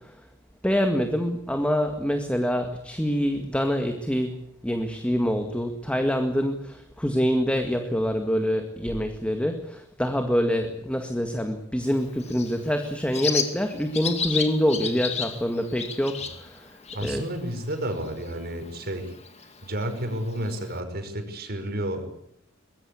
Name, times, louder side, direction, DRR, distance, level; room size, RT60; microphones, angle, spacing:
voice 1, 0.6-4.3 4.6-16.7 17.0-17.2, equal, 5° left, 5 dB, 1.9 m, -25 dB
Bird, 11.8-20.8, left 6 dB, 35° left, 2.4 m, -35 dB
voice 2, 16.9-19.1 19.6-22.0, right 1 dB, 55° right, 6 dB, 5.3 m, -31 dB
23.5 x 21.0 x 8.5 m, 0.75 s
head